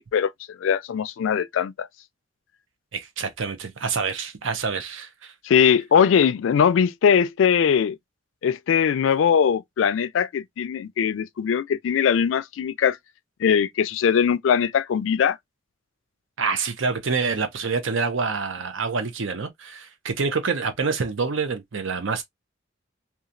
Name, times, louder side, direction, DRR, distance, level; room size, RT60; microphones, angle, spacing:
voice 1, 0.0-1.9 5.4-8.0 8.4-13.0 13.4-15.4, left 7 dB, 75° left, 0.3 m, -21 dB
voice 2, 2.9-5.3 16.4-22.2, right 5 dB, 90° right, 0.7 m, -27 dB
2.9 x 2.3 x 2.5 m
head